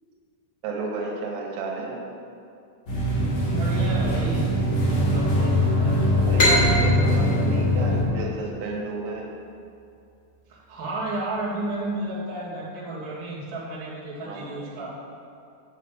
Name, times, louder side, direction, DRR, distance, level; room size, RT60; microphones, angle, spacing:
voice 1, 0.6-2.0 6.2-9.3 14.2-14.7, right 3 dB, 85° right, -1 dB, 3.9 m, -32 dB
sound 1, 2.9-8.0, equal, 45° left, 3.6 m, -22 dB
voice 2, 3.5-4.5 4.8-6.0 10.5-15.0, right 2 dB, 35° right, -8 dB, 2.2 m, -32 dB
sound 2, 6.4-9.8, equal, 70° left, 0.7 m, -25 dB
11.0 x 7.1 x 5.0 m, 2.5 s
omnidirectional pair, 5.7 m